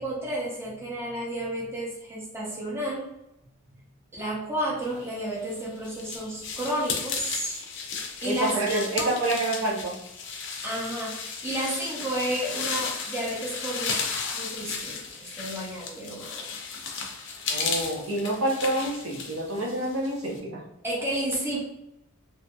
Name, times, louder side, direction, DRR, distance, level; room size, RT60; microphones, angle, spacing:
voice 1, 0.0-3.0 3.7-3.9 4.1-7.6 8.2-9.1 10.5-14.0 14.3-16.6 20.8-21.6, right 1 dB, 10° right, -6 dB, 0.7 m, -31 dB
sound 1, 5.2-20.4, left 5 dB, 55° left, 0.4 m, -34 dB
voice 2, 8.2-9.9 17.5-20.6, right 2 dB, 80° right, -2 dB, 0.7 m, -28 dB
2.7 x 2.7 x 2.2 m, 0.86 s
head